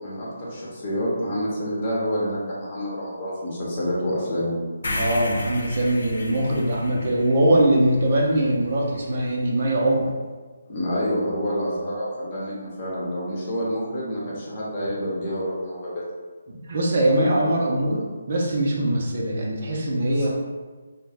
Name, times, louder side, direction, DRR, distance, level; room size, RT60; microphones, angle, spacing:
voice 1, 0.0-4.6 10.7-15.9 20.2-20.3, equal, 30° left, -6 dB, 0.8 m, -28 dB
sound 1, 4.8-9.0, left 2 dB, 65° left, 0.4 m, -33 dB
voice 2, 4.9-10.1 16.5-20.3, right 1 dB, 50° right, -2 dB, 0.5 m, -22 dB
2.3 x 2.0 x 3.4 m, 1.4 s
hypercardioid pair, 160°, 0 cm